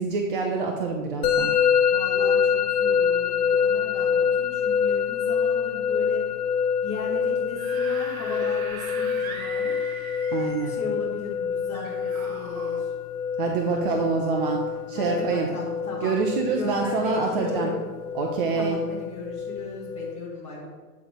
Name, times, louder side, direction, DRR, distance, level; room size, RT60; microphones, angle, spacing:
voice 1, 0.0-1.5 10.3-10.8 13.4-15.5 16.0-17.7 18.1-18.8, right 4 dB, 35° right, 1 dB, 0.6 m, -26 dB
Musical instrument, 1.2-20.1, left 7 dB, 70° left, 1.1 m, -26 dB
voice 2, 1.9-6.4 6.8-9.8 10.7-12.9 14.9-16.2 16.5-17.8 18.6-20.7, left 3 dB, 15° left, -6 dB, 2.2 m, -36 dB
Screaming / Screech, 7.4-10.8 11.7-12.8, right 5 dB, 55° right, 1.0 m, -39 dB
8.4 x 4.0 x 4.6 m, 1.4 s
hypercardioid pair, 130°, 50 cm